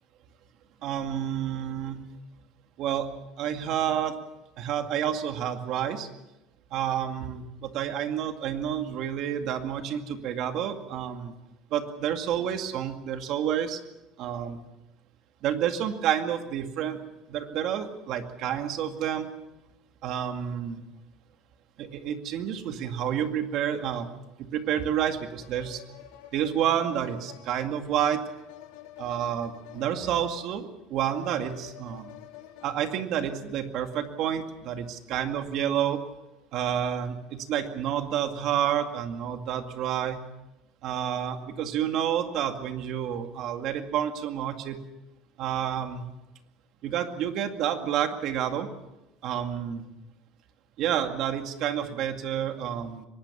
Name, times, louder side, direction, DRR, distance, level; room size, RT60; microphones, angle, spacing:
voice 1, 0.8-2.0 2.8-3.1 3.4-4.2 4.6-6.1 6.7-11.3 11.7-13.8 14.2-14.6 15.4-17.0 17.3-19.3 20.0-20.8 21.8-24.1 24.4-25.8 26.3-28.2 29.0-32.1 32.6-36.0 36.5-40.2 40.8-44.8 45.4-46.0 46.8-48.7 49.2-49.9 50.8-53.1, right 9 dB, 50° right, 6 dB, 2.2 m, -29 dB
sound 1, 24.6-24.7 25.4-32.7, left 13 dB, 90° left, 3.0 m, -48 dB
23.0 x 19.5 x 7.2 m, 0.95 s
cardioid pair, 150°, 0 cm